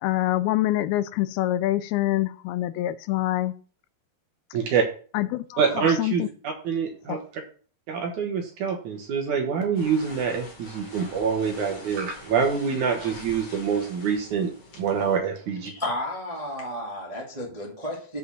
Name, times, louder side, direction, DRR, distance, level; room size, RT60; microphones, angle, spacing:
voice 1, 0.0-3.5 5.1-5.6 6.0-6.3 7.1-7.2, left 15 dB, 85° left, 14 dB, 2.4 m, -25 dB
voice 2, 4.5-4.8 5.6-7.4 7.9-15.7, right 6 dB, 65° right, 3 dB, 2.2 m, -26 dB
sound 1, 9.7-15.2, left 3 dB, 45° left, 1.9 m, -45 dB
voice 3, 15.6-18.2, left 1 dB, 20° right, -2 dB, 0.8 m, -32 dB
6.7 x 5.3 x 6.4 m, 0.41 s
omnidirectional pair, 4.5 m